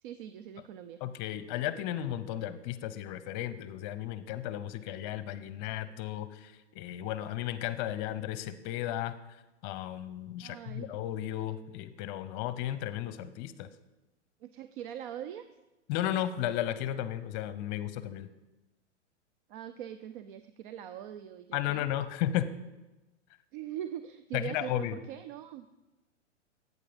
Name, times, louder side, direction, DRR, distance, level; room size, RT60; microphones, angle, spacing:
voice 1, 0.0-1.0 10.4-10.9 14.4-15.4 19.5-21.8 23.5-25.7, right 10 dB, 45° right, 11 dB, 0.6 m, -42 dB
voice 2, 1.0-9.2 9.6-13.7 15.9-18.3 21.5-22.5 24.3-24.9, left 12 dB, 40° left, 14 dB, 0.8 m, -34 dB
11.5 x 8.4 x 5.2 m, 1.1 s
hypercardioid pair, 115°, 37 cm